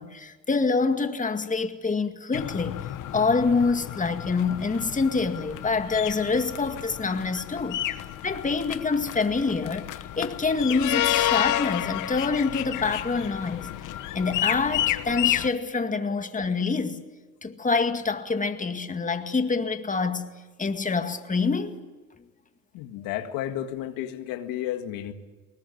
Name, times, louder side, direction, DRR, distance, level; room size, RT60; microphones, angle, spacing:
voice 1, 0.0-2.8 3.1-7.8 8.2-9.9 10.2-13.7 14.1-17.0 17.4-20.3 20.6-21.8, left 4 dB, 25° left, 2.1 m, -26 dB
sound 1, 2.3-15.5, left 13 dB, 65° left, 1.2 m, -30 dB
voice 2, 22.7-25.1, left 12 dB, 80° left, 1.8 m, -32 dB
21.5 x 19.0 x 9.7 m
supercardioid pair, 75°, 33 cm